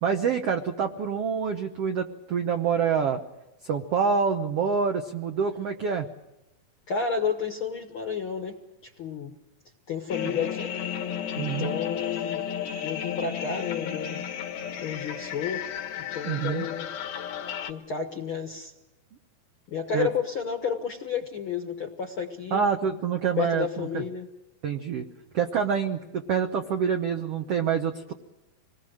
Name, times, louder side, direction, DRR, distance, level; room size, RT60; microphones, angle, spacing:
voice 1, 0.0-3.2 3.6-6.1 10.2-10.3 11.4-11.8 16.2-16.7 19.9-20.1 22.5-24.0 24.6-25.1 25.3-28.1, right 6 dB, 75° right, 5 dB, 1.4 m, -26 dB
voice 2, 6.9-9.3 9.9-10.7 11.3-12.5 12.8-14.2 14.8-15.7 16.0-16.9 17.6-18.7 19.7-22.6 23.4-24.3, left 6 dB, 60° left, 4 dB, 1.4 m, -31 dB
sound 1, 10.1-17.7, left 9 dB, 85° left, 3.3 m, -33 dB
27.0 x 20.5 x 6.5 m, 0.96 s
omnidirectional pair, 4.2 m